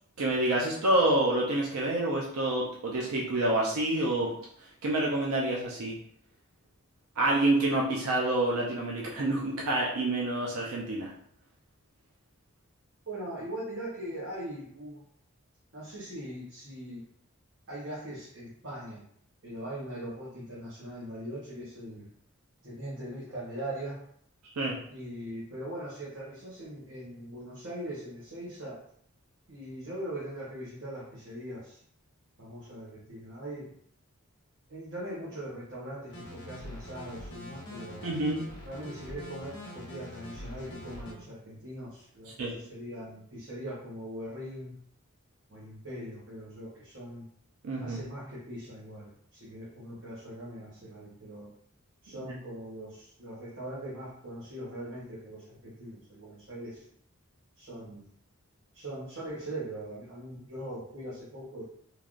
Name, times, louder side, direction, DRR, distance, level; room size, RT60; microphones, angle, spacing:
voice 1, 0.2-4.3 4.8-6.0 7.2-11.1 24.6-24.8 38.0-38.4 42.4-42.5 47.6-48.0 52.1-52.2, right 1 dB, 85° right, -3 dB, 0.5 m, -27 dB
voice 2, 13.1-15.0 15.7-17.0 17.7-19.1 19.4-22.1 22.6-24.0 24.9-28.8 29.5-31.8 32.4-33.7 34.7-38.1 38.6-44.8 45.5-47.3 47.8-51.5 52.0-56.8 57.6-58.0 58.7-61.6, right 1 dB, 55° right, -7 dB, 0.8 m, -41 dB
sound 1, 36.1-41.1, left 1 dB, 50° left, 0.8 m, -44 dB
3.2 x 2.3 x 2.4 m, 0.64 s
head